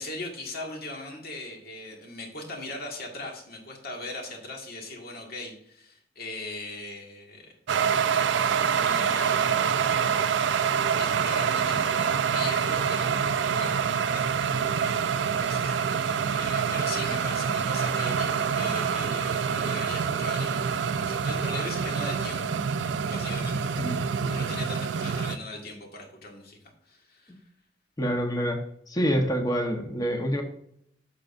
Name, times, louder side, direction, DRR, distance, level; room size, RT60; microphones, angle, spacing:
voice 1, 0.0-7.5 8.7-10.3 10.7-15.8 16.3-22.5 23.0-26.6 26.9-27.3, left 2 dB, 55° left, 0 dB, 2.0 m, -39 dB
sound 1, 7.7-25.4, right 7 dB, 70° right, 0.4 m, -26 dB
voice 2, 28.0-28.6 28.9-30.4, equal, 20° left, 3 dB, 1.2 m, -26 dB
11.0 x 6.4 x 2.6 m, 0.70 s
head